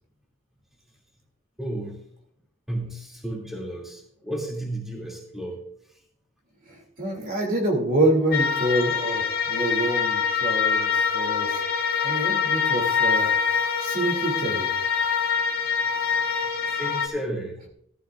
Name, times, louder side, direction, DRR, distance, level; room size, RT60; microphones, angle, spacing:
voice 1, 1.6-2.0 2.7-5.6 5.9-6.0 16.7-17.6, right 1 dB, ahead, -2 dB, 2.6 m, -33 dB
voice 2, 6.7-13.3 13.8-14.7, right 1 dB, 45° right, 0 dB, 2.8 m, -26 dB
sound 1, 8.3-17.1, left 6 dB, 45° left, 1.4 m, -24 dB
15.0 x 13.0 x 2.5 m, 0.69 s
head